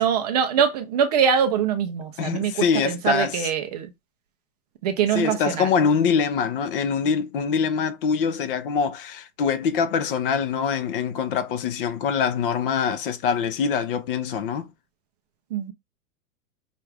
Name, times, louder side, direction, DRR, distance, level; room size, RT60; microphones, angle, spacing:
voice 1, 0.0-3.9 4.8-5.7 15.5-15.7, right 8 dB, 30° right, 0.4 m, -23 dB
voice 2, 2.2-3.5 5.1-14.7, left 6 dB, 40° left, 0.6 m, -24 dB
5.6 x 2.4 x 3.3 m
hypercardioid pair, 150°, 43 cm